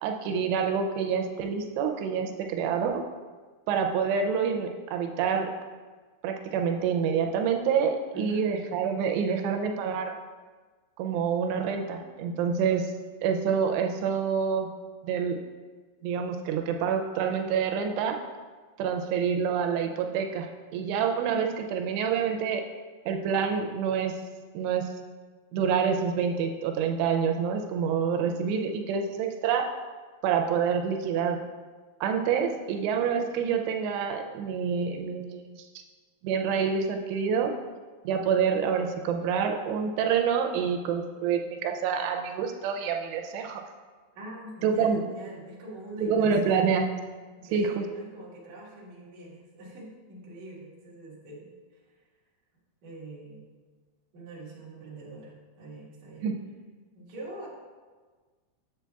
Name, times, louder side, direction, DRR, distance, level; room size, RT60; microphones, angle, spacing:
voice 1, 0.0-3.0 3.7-5.5 6.2-10.2 11.0-12.9 13.2-14.7 15.0-15.4 16.0-18.2 18.8-20.5 20.7-22.6 23.1-24.2 24.5-24.9 25.5-29.7 30.2-31.4 32.0-35.8 36.2-37.5 38.0-43.6 44.6-45.0 46.0-46.9 47.5-47.9 56.2-56.3, right 6 dB, 90° right, 4 dB, 2.7 m, -27 dB
voice 2, 8.1-8.5 44.1-46.7 47.4-51.5 52.8-53.4 54.1-56.3 56.9-57.5, right 1 dB, 55° right, -5 dB, 2.3 m, -43 dB
7.5 x 7.2 x 2.3 m, 1.4 s
omnidirectional pair, 4.7 m